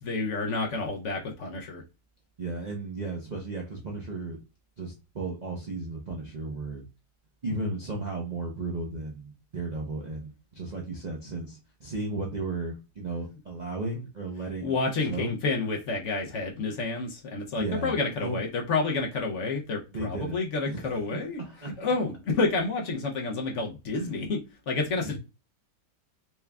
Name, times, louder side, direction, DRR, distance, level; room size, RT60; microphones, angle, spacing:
voice 1, 0.0-1.8 14.6-24.4 24.7-25.2, left 3 dB, 65° left, 0.7 m, -29 dB
voice 2, 2.4-4.4 4.8-6.8 7.4-15.3 17.6-17.9 18.2-18.4 19.9-21.7 23.9-24.1 25.0-25.2, right 2 dB, 85° right, 0.3 m, -35 dB
4.4 x 2.3 x 3.3 m
omnidirectional pair, 1.9 m